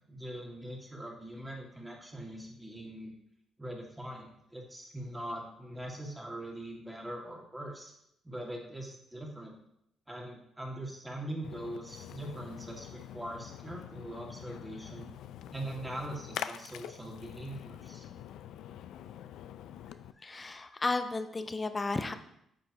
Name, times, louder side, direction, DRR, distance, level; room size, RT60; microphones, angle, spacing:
voice 1, 0.0-3.1 3.6-7.9 8.2-9.6 10.1-15.1 15.5-18.1, right 1 dB, 10° right, -1 dB, 1.9 m, -42 dB
Splash splatter, 11.4-20.1, left 10 dB, 85° left, 0.3 m, -45 dB
voice 2, 20.2-22.1, left 3 dB, 25° left, 9 dB, 0.6 m, -33 dB
8.9 x 6.3 x 2.9 m, 0.76 s
cardioid pair, 90°, 0 cm